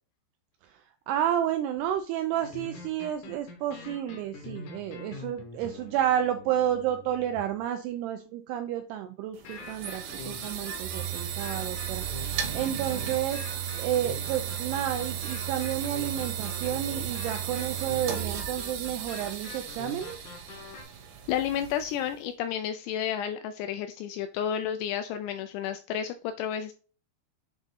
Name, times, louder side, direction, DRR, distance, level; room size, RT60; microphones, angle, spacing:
voice 1, 0.6-20.2, right 11 dB, 90° right, 7 dB, 2.3 m, -31 dB
sound 1, 2.3-7.6 9.4-20.8, left 4 dB, 70° left, 1.9 m, -44 dB
sound 2, 9.3-22.1, right 10 dB, 70° right, 2.4 m, -35 dB
voice 2, 21.3-26.7, left 9 dB, 85° left, 9 dB, 2.4 m, -31 dB
7.8 x 3.5 x 4.1 m, 0.37 s
omnidirectional pair, 5.3 m